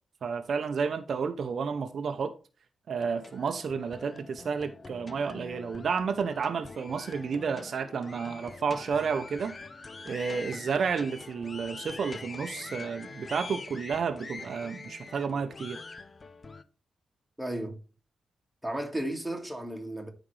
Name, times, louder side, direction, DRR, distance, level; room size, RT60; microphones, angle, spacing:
voice 1, 0.2-2.3 2.9-9.6 10.1-15.8, right 5 dB, 55° right, 0.7 m, -31 dB
sound 1, 2.9-16.6, left 3 dB, 25° left, 0.6 m, -44 dB
voice 2, 17.4-17.8 18.6-20.1, right 1 dB, ahead, 1.8 m, -34 dB
12.5 x 5.1 x 3.3 m
wide cardioid pair, 155°, 0 cm